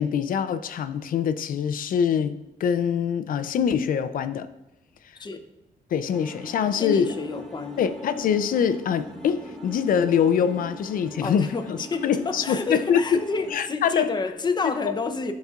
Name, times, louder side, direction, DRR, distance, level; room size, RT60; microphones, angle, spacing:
voice 1, 0.0-4.5 5.9-7.1 7.8-11.8 12.0-13.2 13.5-14.1, left 7 dB, 65° left, 0.5 m, -24 dB
sound 1, 6.1-13.5, right 1 dB, ahead, 1.4 m, -42 dB
voice 2, 6.7-7.9 11.2-15.3, left 4 dB, 30° left, 0.7 m, -29 dB
11.0 x 4.2 x 2.4 m
cardioid pair, 105°, 15 cm